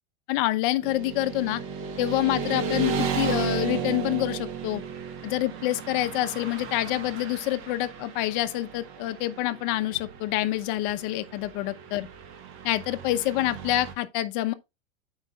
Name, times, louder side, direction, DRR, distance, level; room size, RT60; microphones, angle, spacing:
voice 1, 0.3-1.6 2.0-4.8 5.2-12.1 12.6-14.5, left 15 dB, 50° left, 0.8 m, -27 dB
Motorcycle / Traffic noise roadway noise, 0.8-13.9, right 6 dB, 40° right, 1.3 m, -34 dB
12.5 x 4.9 x 2.3 m
supercardioid pair, 155°, 32 cm